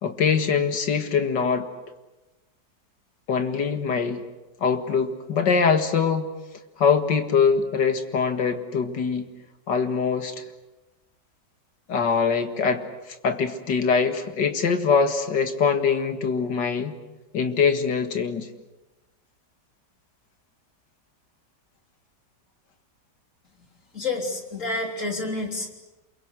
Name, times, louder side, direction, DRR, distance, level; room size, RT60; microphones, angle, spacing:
voice 1, 0.0-1.7 3.3-4.2 4.6-6.3 6.8-9.3 9.7-10.4 11.9-17.0 17.3-18.5, left 5 dB, 80° left, 7 dB, 2.5 m, -23 dB
voice 2, 23.9-25.7, left 2 dB, 45° left, 2 dB, 3.9 m, -29 dB
28.0 x 23.0 x 8.1 m, 1.1 s
omnidirectional pair, 1.9 m